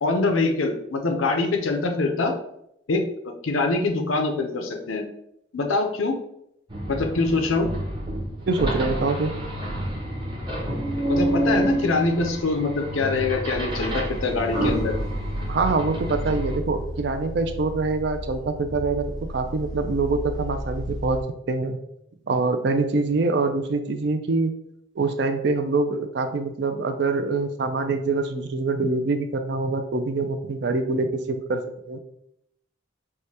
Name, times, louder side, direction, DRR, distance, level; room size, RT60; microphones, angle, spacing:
voice 1, 0.0-2.3 2.9-5.0 5.5-6.2 6.9-7.7 11.1-15.0, left 3 dB, 80° left, 4 dB, 0.6 m, -24 dB
sound 1, 6.7-16.6, right 1 dB, 25° right, 0.7 m, -28 dB
voice 2, 8.5-9.3 15.5-19.0 19.3-21.2 21.5-21.8 22.3-24.5 25.0-31.6 31.9-32.0, right 3 dB, 55° right, 8 dB, 0.4 m, -24 dB
sound 2, 10.5-21.2, equal, 20° left, 0.4 m, -35 dB
4.7 x 2.2 x 2.8 m, 0.76 s
head